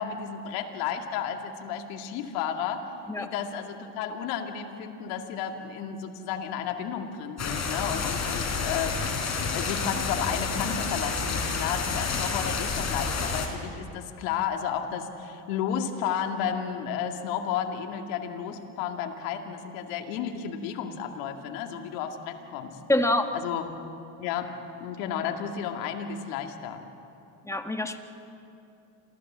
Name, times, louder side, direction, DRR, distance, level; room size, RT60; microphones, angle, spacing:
voice 1, 0.0-2.9 3.2-9.0 9.5-22.8 23.3-23.7 24.2-24.5 24.8-26.8, left 8 dB, 80° left, 4 dB, 2.3 m, -32 dB
sound 1, 7.4-13.5, left 4 dB, 35° left, 4.8 m, -29 dB
voice 2, 22.9-23.2 27.4-28.0, left 1 dB, 5° left, 5 dB, 1.7 m, -25 dB
27.5 x 15.5 x 7.5 m, 2.7 s
supercardioid pair, 85°, 49 cm